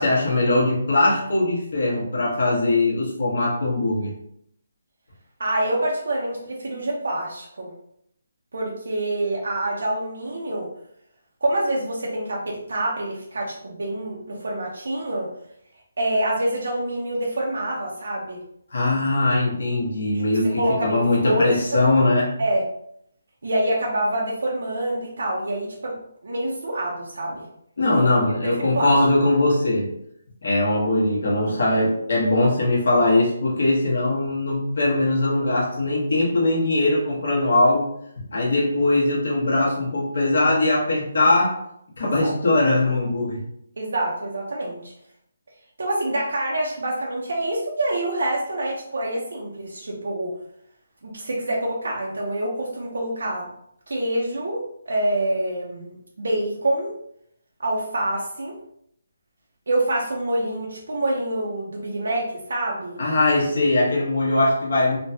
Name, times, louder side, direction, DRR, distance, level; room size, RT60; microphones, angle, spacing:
voice 1, 0.0-4.1 18.7-22.3 27.8-29.9 30.4-37.9 38.2-41.6 42.0-43.4 63.0-65.0, left 2 dB, 55° left, -4 dB, 1.0 m, -21 dB
voice 2, 5.4-7.7 8.5-10.7 11.4-15.3 16.0-18.4 20.4-21.8 22.4-22.6 23.4-26.0 26.2-27.5 28.0-28.1 28.4-28.9 39.6-39.7 42.2-42.3 43.8-44.9 45.8-50.3 51.0-53.5 53.9-56.9 57.6-58.6 59.7-63.0, right 1 dB, 75° right, -3 dB, 0.6 m, -26 dB
3.1 x 2.2 x 2.7 m, 0.73 s
hypercardioid pair, 175°, 0 cm